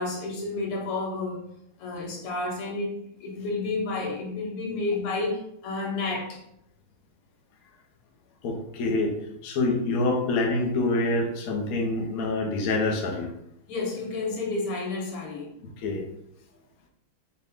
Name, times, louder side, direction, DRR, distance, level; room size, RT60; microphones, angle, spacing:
voice 1, 0.0-1.4 1.8-2.9 3.2-6.4 13.7-15.6, left 3 dB, 90° left, -1 dB, 2.0 m, -30 dB
voice 2, 8.4-9.1 9.4-13.3 15.8-16.0, left 2 dB, 55° left, 0 dB, 1.0 m, -26 dB
6.0 x 2.3 x 3.7 m, 0.80 s
omnidirectional pair, 2.4 m